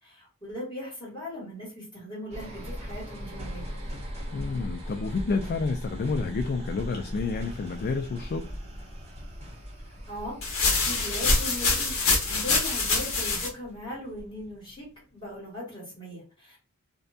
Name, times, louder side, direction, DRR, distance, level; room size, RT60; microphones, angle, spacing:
voice 1, 0.0-3.7 10.1-10.4 10.8-12.0 12.2-14.9 15.1-16.6, left 1 dB, 20° left, 1.5 m, -39 dB
sound 1, 2.3-14.8 15.2-15.3, equal, 30° right, 0.9 m, -39 dB
voice 2, 4.3-8.5, left 4 dB, 45° left, 0.3 m, -29 dB
sound 2, 10.4-13.5, left 3 dB, 65° left, 0.9 m, -25 dB
2.6 x 2.2 x 2.4 m
head